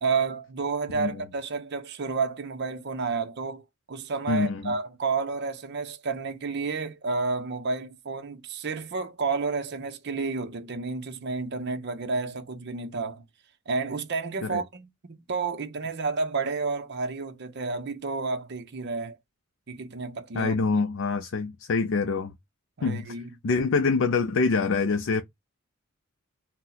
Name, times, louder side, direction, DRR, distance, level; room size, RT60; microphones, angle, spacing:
voice 1, 0.0-13.2 13.7-19.2 19.7-20.5 22.8-23.3, right 4 dB, 55° right, 0.6 m, -30 dB
voice 2, 4.3-4.8 14.4-14.6 20.3-22.3 22.8-23.2 23.4-25.2, left 4 dB, 65° left, 0.4 m, -25 dB
2.8 x 2.1 x 3.8 m
head